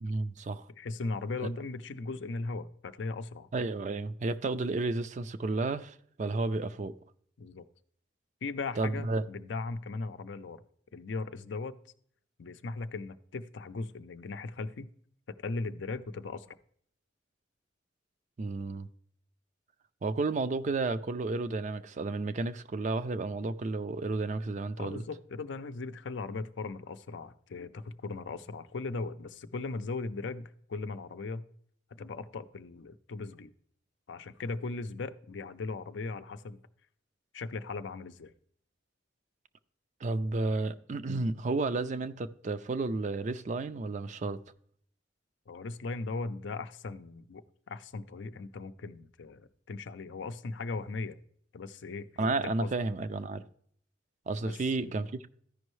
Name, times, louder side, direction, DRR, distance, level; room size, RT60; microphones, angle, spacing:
voice 1, 0.0-0.7 3.5-6.9 8.8-9.2 18.4-18.9 20.0-25.0 40.0-44.4 52.2-53.4 54.3-55.3, right 3 dB, 40° right, 0.4 m, -32 dB
voice 2, 0.8-3.5 7.4-7.7 8.4-10.6 10.9-11.8 12.4-14.9 15.3-16.5 24.8-31.4 32.0-33.5 34.1-36.6 37.3-38.3 45.5-51.2 51.5-52.1 52.4-52.7 54.4-55.0, left 3 dB, 75° left, 0.5 m, -38 dB
14.0 x 5.3 x 3.1 m
head